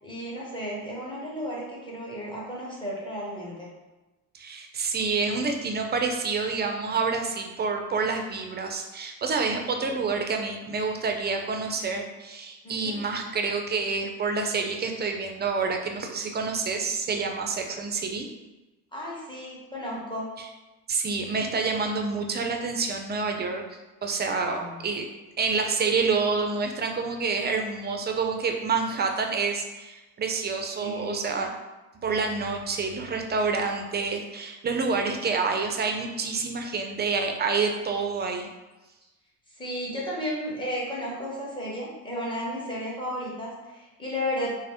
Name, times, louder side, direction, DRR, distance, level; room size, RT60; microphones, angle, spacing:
voice 1, 0.0-3.7 9.9-10.0 12.6-13.0 18.9-20.3 24.4-24.8 30.8-31.3 39.5-44.6, equal, 10° left, -5 dB, 1.1 m, -33 dB
voice 2, 4.3-18.3 20.9-25.1 25.4-31.5 32.0-38.5, right 4 dB, 25° right, 3 dB, 0.4 m, -28 dB
3.0 x 2.1 x 2.8 m, 1.1 s
hypercardioid pair, 70°, 39 cm